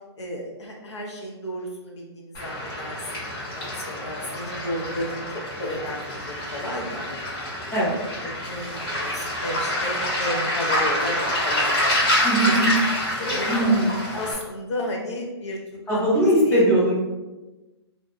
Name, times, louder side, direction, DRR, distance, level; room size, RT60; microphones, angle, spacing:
voice 1, 0.2-5.2 5.6-7.3 8.1-12.1 13.2-15.6 15.9-16.7, left 1 dB, 80° left, -1 dB, 0.7 m, -33 dB
Waves surf, 2.3-14.3, left 1 dB, 55° left, 1.2 m, -27 dB
voice 2, 12.2-12.7 13.5-13.9 15.9-17.0, right 1 dB, 15° left, -6 dB, 0.8 m, -20 dB
2.7 x 2.3 x 2.5 m, 1.1 s
hypercardioid pair, 135°, 14 cm